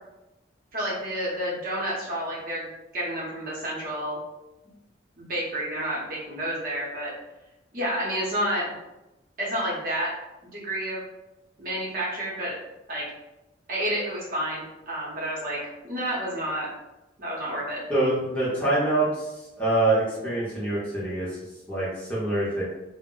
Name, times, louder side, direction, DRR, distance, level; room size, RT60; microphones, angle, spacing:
voice 1, 0.7-4.2 5.2-7.1 7.7-8.7 9.4-10.1 10.5-11.0 11.6-12.5 12.9-13.0 13.7-15.6 15.9-16.7 17.2-17.8, right 1 dB, 45° right, -5 dB, 0.8 m, -30 dB
voice 2, 17.9-19.2 19.6-21.3 21.7-22.6, right 2 dB, 5° left, -9 dB, 0.7 m, -25 dB
2.0 x 2.0 x 3.6 m, 0.98 s
head